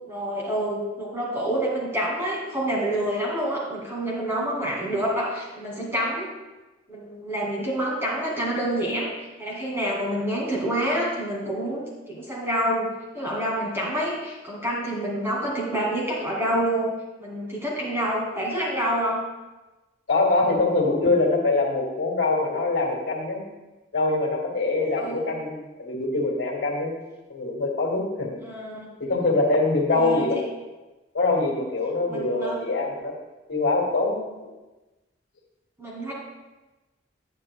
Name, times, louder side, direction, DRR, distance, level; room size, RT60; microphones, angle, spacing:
voice 1, 0.1-6.3 6.9-9.1 9.4-12.9 13.1-19.2 25.0-25.2 28.4-28.9 29.9-30.4 32.1-32.6 35.8-36.1, right 1 dB, 15° right, -4 dB, 2.3 m, -27 dB
voice 2, 20.1-23.4 23.9-27.0 27.3-28.4 29.0-30.4 31.1-33.1 33.5-34.5, left 3 dB, 70° left, -2 dB, 2.2 m, -24 dB
9.9 x 9.9 x 2.3 m, 1.1 s
head